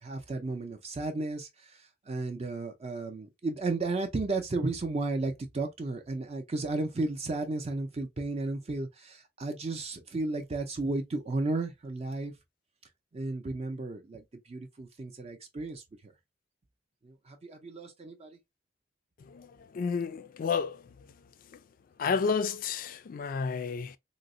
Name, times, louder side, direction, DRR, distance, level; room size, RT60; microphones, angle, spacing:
voice 1, 0.0-12.3 13.1-15.8 17.0-18.3, right 2 dB, 35° right, 0.5 m, -34 dB
voice 2, 19.2-20.8 21.5-21.6 22.0-24.0, left 5 dB, 50° left, 0.3 m, -31 dB
3.8 x 2.0 x 2.5 m
head